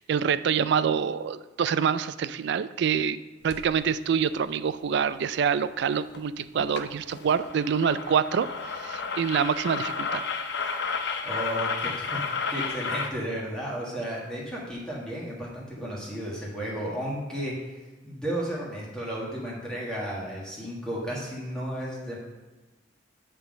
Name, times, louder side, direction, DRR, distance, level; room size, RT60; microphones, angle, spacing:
voice 1, 0.0-3.2 3.4-10.2, right 7 dB, 60° right, 14 dB, 0.3 m, -26 dB
sound 1, 3.5-3.7 6.1-6.2 6.6-6.8 7.1-13.1, left 5 dB, 60° left, 0.6 m, -32 dB
voice 2, 11.2-17.8 18.0-22.2, equal, 5° left, -5 dB, 1.6 m, -33 dB
9.6 x 3.7 x 5.1 m, 1.2 s
head